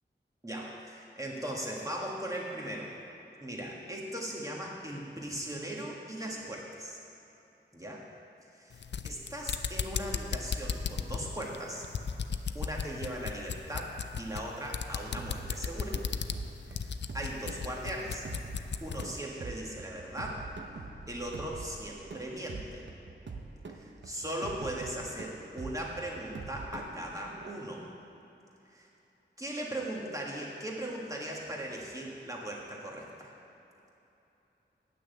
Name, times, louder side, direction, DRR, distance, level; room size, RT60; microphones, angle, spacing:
voice 1, 0.4-2.9 3.4-7.0 7.7-8.1 8.5-11.8 12.5-16.0 16.7-16.9 17.1-18.2 18.8-20.5 21.1-22.9 23.7-27.9 28.7-28.9 29.4-33.3, right 1 dB, 15° right, -2 dB, 1.7 m, -38 dB
sound 1, 8.7-19.1, left 6 dB, 65° left, 0.4 m, -36 dB
sound 2, 15.2-27.5, right 3 dB, 70° right, 0.8 m, -45 dB
9.2 x 6.2 x 7.9 m, 2.9 s
wide cardioid pair, 85°, 19 cm